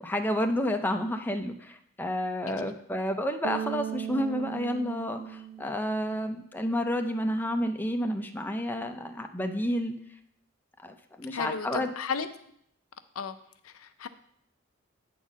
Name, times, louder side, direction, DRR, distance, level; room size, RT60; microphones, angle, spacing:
voice 1, 0.0-10.0 10.8-11.9, equal, 10° left, 5 dB, 0.5 m, -30 dB
Bass guitar, 3.4-6.6, right 10 dB, 80° right, 0.9 m, -38 dB
voice 2, 11.3-12.3 13.2-13.4 13.6-14.1, left 5 dB, 80° left, 10 dB, 0.6 m, -34 dB
8.4 x 4.1 x 6.1 m, 0.69 s
head